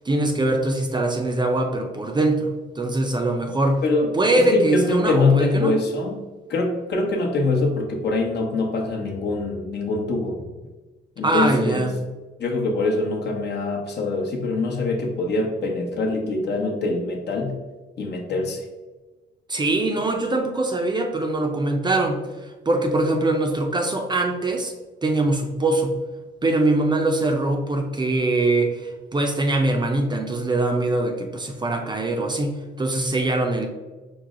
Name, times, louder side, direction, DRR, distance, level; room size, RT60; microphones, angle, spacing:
voice 1, 0.1-3.8 4.1-5.8 11.2-11.9 19.5-22.2 22.7-24.7 25.0-26.0 26.4-33.7, right 2 dB, 20° right, 2 dB, 0.5 m, -22 dB
voice 2, 3.8-6.2 6.5-10.4 11.2-11.9 12.4-17.6 18.0-18.6, left 3 dB, 60° left, 1 dB, 0.9 m, -24 dB
4.7 x 2.1 x 3.6 m, 1.2 s
cardioid pair, 90°, 20 cm